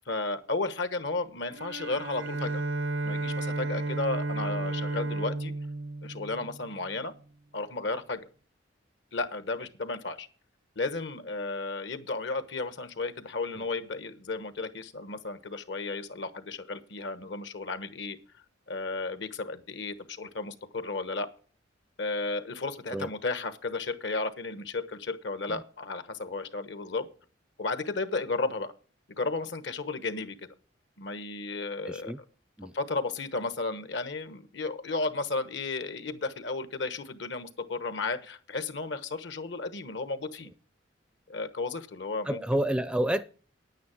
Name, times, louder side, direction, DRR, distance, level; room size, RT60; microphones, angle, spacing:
voice 1, 0.1-2.6 3.0-5.5 6.0-7.1 7.5-8.3 9.1-10.3 10.8-18.2 18.7-21.3 22.0-27.1 27.6-28.7 29.2-30.4 31.0-32.1 32.7-40.5 41.3-42.4, left 3 dB, 65° left, 1.1 m, -33 dB
Bowed string instrument, 1.5-7.0, right 2 dB, 90° right, 0.7 m, -33 dB
voice 2, 31.8-32.2 32.6-32.7 42.2-43.2, right 1 dB, 5° right, 0.4 m, -29 dB
9.6 x 9.5 x 6.3 m
head